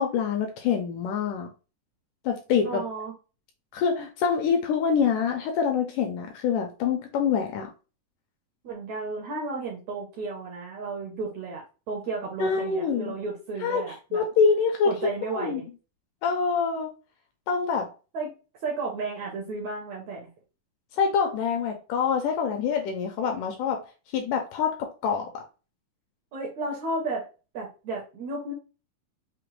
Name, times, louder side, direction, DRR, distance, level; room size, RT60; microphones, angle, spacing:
voice 1, 0.0-1.5 2.3-2.8 3.7-7.7 12.4-13.1 13.6-13.8 14.1-15.6 16.2-16.9 17.5-17.9 21.0-23.8 24.1-25.4, left 6 dB, 80° left, 1.9 m, -25 dB
voice 2, 2.6-3.1 8.6-14.2 14.8-15.6 18.1-18.3 18.6-20.3 26.3-27.3 27.5-28.5, right 3 dB, 75° right, 1.7 m, -33 dB
5.8 x 2.0 x 3.1 m
omnidirectional pair, 4.1 m